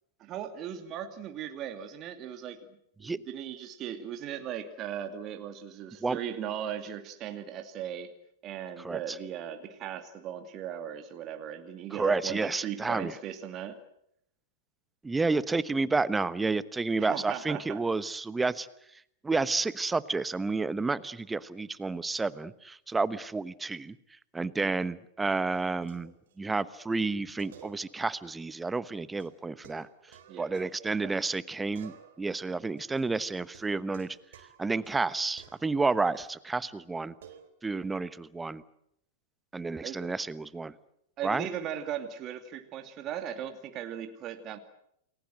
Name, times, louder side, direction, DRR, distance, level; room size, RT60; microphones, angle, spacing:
voice 1, 0.2-2.7 3.0-8.1 8.4-13.8 17.0-17.8 24.6-24.8 30.3-30.5 31.0-31.2 39.8-40.1 41.2-44.6, right 9 dB, 35° right, 6 dB, 2.6 m, -38 dB
voice 2, 8.8-9.2 11.9-13.2 15.0-18.7 19.2-24.0 24.3-29.9 30.4-31.9 32.2-34.1 34.6-37.1 37.6-38.6 39.5-40.7 41.2-41.5, right 3 dB, 10° right, 17 dB, 1.1 m, -30 dB
sound 1, 25.5-26.6 26.9-27.0 27.4-28.2 28.5-28.6 29.2-31.4 31.8-32.4 32.8-36.5 37.2-37.5, right 8 dB, 60° right, 3.8 m, -55 dB
29.5 x 21.0 x 7.8 m, 0.74 s
figure-of-eight pair, 100°, 0 cm